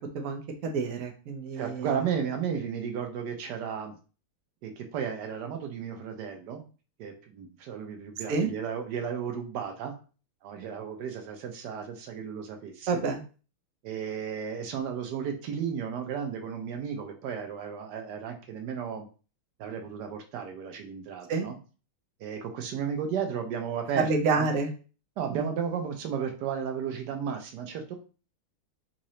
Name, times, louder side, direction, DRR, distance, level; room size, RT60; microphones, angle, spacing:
voice 1, 0.1-1.9 8.3-8.5 12.9-13.2 21.3-21.5 24.0-24.7 25.3-25.5, right 4 dB, 90° right, 3 dB, 0.7 m, -28 dB
voice 2, 1.5-3.9 4.6-6.6 7.0-9.9 10.4-13.0 13.8-19.1 19.6-21.6 22.2-24.1 24.3-24.5 25.2-28.0, right 7 dB, 70° right, 4 dB, 1.0 m, -34 dB
3.8 x 2.7 x 3.1 m, 0.36 s
omnidirectional pair, 2.3 m